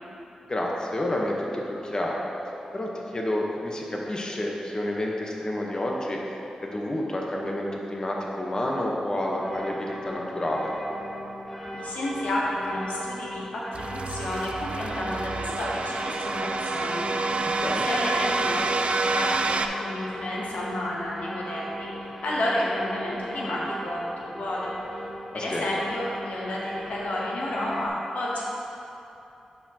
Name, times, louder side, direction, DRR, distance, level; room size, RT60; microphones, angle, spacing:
voice 1, 0.4-2.2 2.7-6.2 6.6-10.7 17.4-17.8 25.3-25.7, left 1 dB, 35° left, -2 dB, 0.9 m, -29 dB
sound 1, 9.2-27.9, equal, 10° left, 0.9 m, -38 dB
voice 2, 11.7-17.3 17.8-25.0 25.3-28.4, left 1 dB, 90° left, -5 dB, 1.0 m, -31 dB
sound 2, 13.7-19.7, right 3 dB, 55° right, 0.3 m, -28 dB
10.5 x 4.4 x 2.8 m, 2.9 s
cardioid pair, 55°, 2 cm